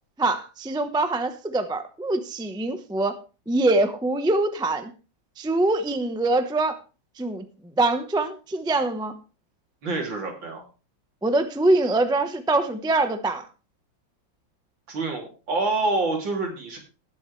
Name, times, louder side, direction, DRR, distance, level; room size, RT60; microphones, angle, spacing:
voice 1, 0.2-3.2 3.5-4.9 5.4-6.8 7.2-7.5 7.8-9.1 11.2-13.4, right 2 dB, 5° right, 9 dB, 0.4 m, -24 dB
voice 2, 9.8-10.6 14.9-16.8, right 3 dB, 70° right, 1 dB, 3.7 m, -27 dB
19.0 x 7.4 x 3.2 m, 0.33 s
omnidirectional pair, 2.1 m